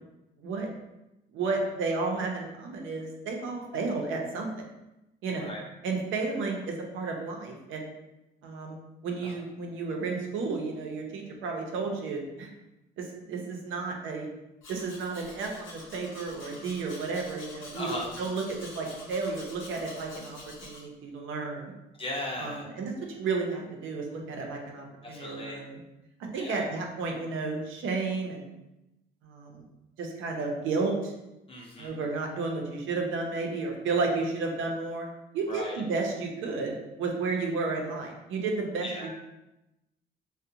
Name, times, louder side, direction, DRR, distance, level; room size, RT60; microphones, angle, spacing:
voice 1, 0.4-0.7 1.3-4.5 5.2-5.6 5.8-7.9 8.4-8.8 9.0-12.5 13.0-14.3 14.7-21.7 22.4-25.8 26.3-28.5 29.2-29.6 30.0-31.1 31.8-35.1 35.3-38.9, right 4 dB, 80° right, 1 dB, 0.5 m, -32 dB
voice 2, 5.3-5.6 9.2-9.3 17.7-18.1 22.0-22.7 25.0-25.6 26.3-26.7 31.5-32.0 35.5-35.8 38.8-39.1, left 1 dB, 30° left, -2 dB, 0.6 m, -37 dB
Domestic sounds home sounds, 14.6-20.8, left 2 dB, 80° left, 0.7 m, -47 dB
2.5 x 2.1 x 2.7 m, 0.95 s
cardioid pair, 90°, 20 cm